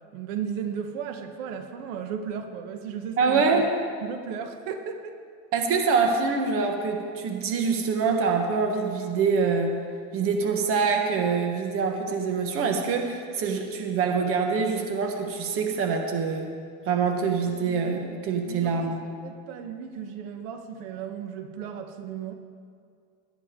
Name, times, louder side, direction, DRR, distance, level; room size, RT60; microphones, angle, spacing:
voice 1, 0.1-3.6 4.0-5.2 18.5-22.3, right 7 dB, 75° right, 6 dB, 1.2 m, -35 dB
voice 2, 3.2-3.7 5.5-9.8 10.1-16.5 16.9-19.0, right 5 dB, 35° right, 4 dB, 1.3 m, -25 dB
18.0 x 10.5 x 3.7 m, 2.3 s
cardioid pair, 160°, 39 cm